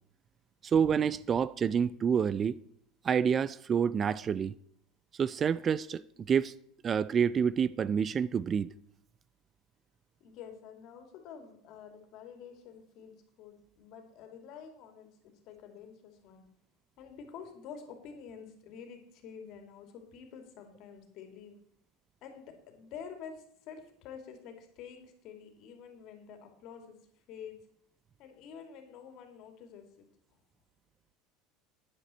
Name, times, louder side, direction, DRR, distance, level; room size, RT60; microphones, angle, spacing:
voice 1, 0.6-2.6 3.0-4.5 5.2-6.0 6.3-6.5 6.8-8.7, right 7 dB, 30° right, 0.3 m, -28 dB
voice 2, 10.2-16.5 17.0-21.6 22.2-27.0 27.3-27.6 28.2-30.1, left 7 dB, 55° left, 2.5 m, -48 dB
10.5 x 9.8 x 4.4 m
supercardioid pair, 115°, 0 cm